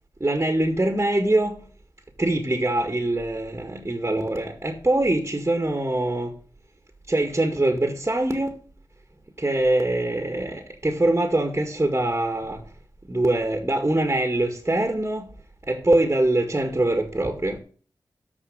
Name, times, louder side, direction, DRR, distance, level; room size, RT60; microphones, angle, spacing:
voice 1, 0.2-1.6 2.2-6.3 7.1-8.5 9.4-12.6 13.1-15.3 15.7-17.6, right 1 dB, 25° right, 1.9 m, -23 dB
13.5 x 4.8 x 6.7 m
cardioid pair, 45°, 9 cm